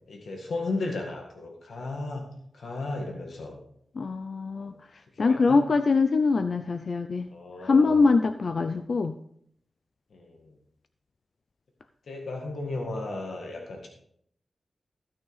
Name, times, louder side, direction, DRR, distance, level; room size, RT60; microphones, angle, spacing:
voice 1, 0.1-2.2 2.5-3.6 4.6-4.7 5.2-5.6 7.3-8.2 10.1-10.6 12.1-13.9, left 2 dB, 80° left, 1 dB, 1.8 m, -35 dB
voice 2, 4.0-4.7 5.2-7.3 7.6-9.1, left 4 dB, 60° left, 10 dB, 0.5 m, -23 dB
15.5 x 6.3 x 4.1 m, 0.68 s
wide cardioid pair, 70°, 0 cm